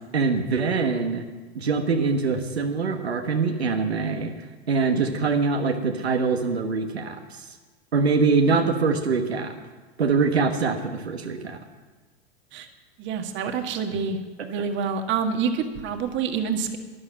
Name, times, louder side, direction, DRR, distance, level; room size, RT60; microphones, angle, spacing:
voice 1, 0.1-1.2 1.5-4.3 4.7-7.5 7.9-9.6 10.0-11.6, right 4 dB, 80° right, 5 dB, 1.3 m, -23 dB
voice 2, 13.0-16.8, right 6 dB, 35° right, 6 dB, 1.6 m, -27 dB
12.0 x 11.5 x 7.3 m, 1.3 s
figure-of-eight pair, 90°, 31 cm